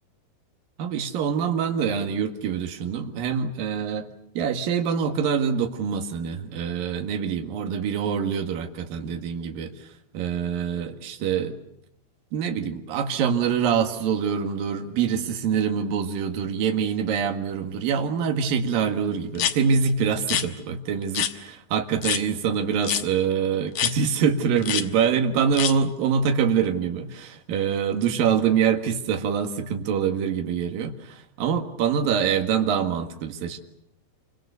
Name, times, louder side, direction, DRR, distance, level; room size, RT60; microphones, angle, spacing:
voice 1, 0.8-4.1 4.3-9.7 10.1-11.6 12.3-33.6, right 7 dB, 60° right, 5 dB, 3.3 m, -25 dB
sound 1, 19.4-19.6 20.2-20.5 21.2-21.3 22.0-22.2 22.8-23.1 23.8-23.9 24.6-24.9 25.5-25.7, left 10 dB, 65° left, 2.4 m, -25 dB
28.0 x 25.0 x 6.9 m, 0.72 s
omnidirectional pair, 4.9 m